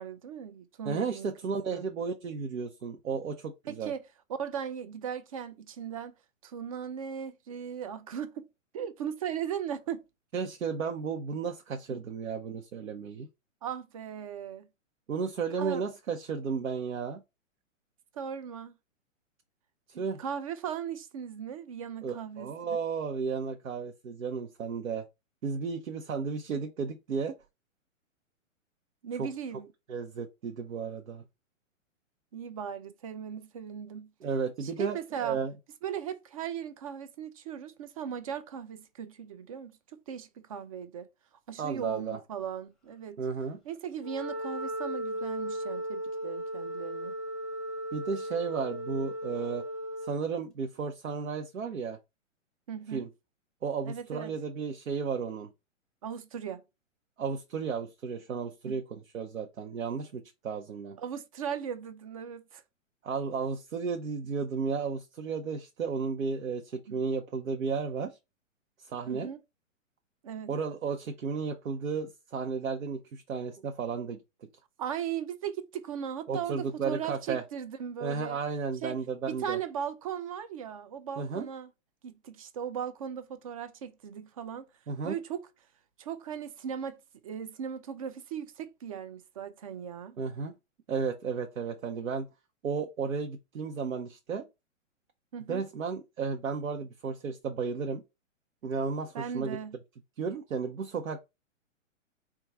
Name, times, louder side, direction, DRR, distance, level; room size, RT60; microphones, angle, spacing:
voice 1, 0.0-1.3 1.7-1.9 3.7-4.0 4.4-6.1 6.4-8.5 8.7-10.0 11.9-12.0 13.6-14.7 15.6-15.8 18.1-18.7 19.9-22.8 29.0-29.7 32.3-34.1 34.6-35.4 35.8-41.1 41.5-43.2 43.7-47.1 52.7-53.1 53.9-54.3 56.0-56.6 58.7-58.8 61.0-62.6 66.9-67.0 69.1-69.4 70.2-70.5 74.8-78.4 78.8-79.0 79.3-81.7 82.0-84.7 85.0-85.4 86.0-87.0 87.2-90.2 95.3-95.6 99.1-99.8, right 8 dB, 30° right, 0.4 m, -38 dB
voice 2, 0.8-3.9 10.3-13.3 15.1-17.2 20.0-20.2 22.0-25.0 25.4-27.3 29.2-29.3 29.9-31.2 34.2-35.5 41.6-42.2 43.2-43.6 47.9-49.6 50.0-52.0 52.9-53.1 53.6-55.5 57.2-61.0 63.0-68.2 68.8-69.3 70.5-74.2 76.3-77.4 78.0-79.6 81.2-81.5 84.9-85.2 90.2-90.5 90.9-92.3 92.6-94.5 95.5-98.0 98.6-99.6 100.2-101.3, right 5 dB, 85° right, 0.8 m, -33 dB
Wind instrument woodwind instrument, 44.0-50.3, equal, ahead, 0.7 m, -36 dB
4.5 x 2.4 x 4.1 m
hypercardioid pair, 130°, 39 cm